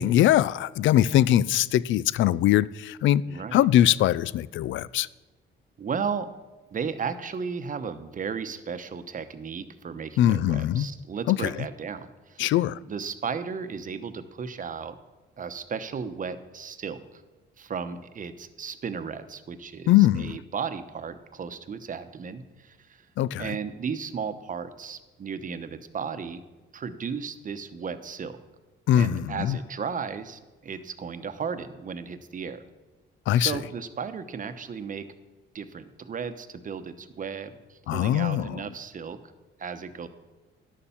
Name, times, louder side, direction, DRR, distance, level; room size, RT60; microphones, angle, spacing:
voice 1, 0.0-3.2 3.5-5.1 10.2-10.9 11.3-11.4 12.4-12.8 19.9-20.4 23.2-23.5 28.9-29.6 33.3-33.5 37.9-38.6, left 12 dB, 75° left, 0.4 m, -22 dB
voice 2, 3.3-3.6 5.8-6.3 6.7-12.5 12.9-15.0 15.4-17.2 17.6-23.0 23.4-26.4 26.7-28.4 28.9-32.6 33.4-35.1 35.5-39.2 39.6-40.1, right 6 dB, 40° right, 0.9 m, -35 dB
11.0 x 6.9 x 7.1 m
cardioid pair, 90°, 20 cm